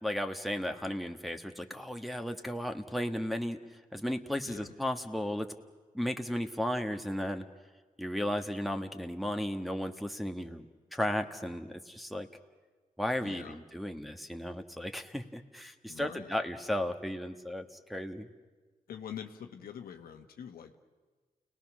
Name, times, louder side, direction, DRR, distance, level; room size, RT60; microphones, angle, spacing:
voice 1, 0.0-5.5 5.9-7.4 8.0-12.3 13.0-18.3, left 1 dB, ahead, 4 dB, 1.7 m, -35 dB
voice 2, 13.2-13.6 15.9-16.3 18.9-20.7, left 8 dB, 85° left, 5 dB, 1.2 m, -45 dB
29.5 x 19.0 x 6.3 m, 1.3 s
cardioid pair, 50°, 15 cm